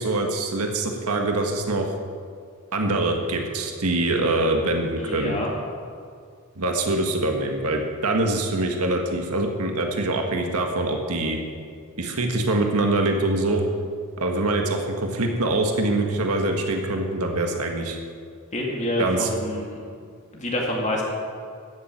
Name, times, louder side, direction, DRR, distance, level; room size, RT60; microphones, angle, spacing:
voice 1, 0.0-1.9 2.7-5.4 6.5-11.4 12.0-13.6 14.2-18.0 19.0-19.3, right 2 dB, 80° right, 3 dB, 1.6 m, -24 dB
voice 2, 5.0-5.5 18.5-19.8 20.3-21.0, left 1 dB, 30° left, -2 dB, 2.4 m, -27 dB
14.5 x 7.4 x 9.2 m, 2.2 s
head